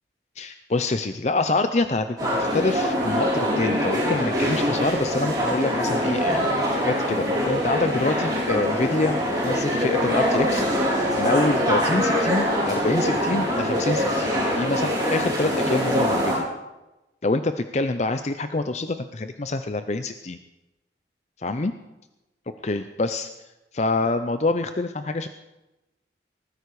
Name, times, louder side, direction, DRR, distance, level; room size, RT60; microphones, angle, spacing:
voice 1, 0.4-9.2 9.4-16.5 17.2-20.4 21.4-21.7 22.6-23.3 23.7-25.3, left 2 dB, 35° left, 9 dB, 0.5 m, -26 dB
sound 1, 2.2-16.3, equal, 20° right, 4.9 m, -23 dB
20.0 x 14.5 x 4.8 m, 1.0 s
head